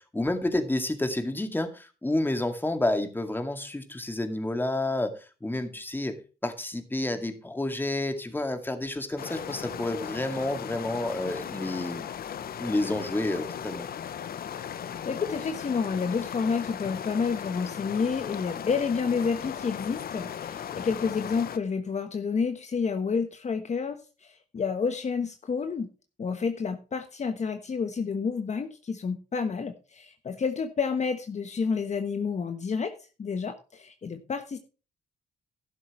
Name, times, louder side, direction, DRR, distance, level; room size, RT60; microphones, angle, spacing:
voice 1, 0.0-12.1 12.6-13.9, left 1 dB, 10° left, 6 dB, 2.2 m, -30 dB
sound 1, 9.2-21.6, left 9 dB, 65° left, 0.9 m, -37 dB
voice 2, 15.0-25.9 26.2-34.6, left 5 dB, 45° left, 7 dB, 1.2 m, -30 dB
12.0 x 11.0 x 3.2 m, 0.33 s
cardioid pair, 95°, 16 cm